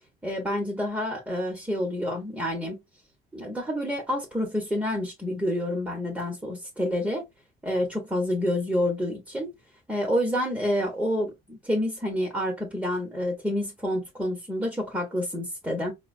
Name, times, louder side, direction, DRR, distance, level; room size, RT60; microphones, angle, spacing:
voice 1, 0.2-2.8 3.3-7.2 7.6-9.5 9.9-15.9, left 1 dB, 5° right, 0.9 m, -28 dB
4.1 x 2.1 x 2.5 m
cardioid pair, 110°, 17 cm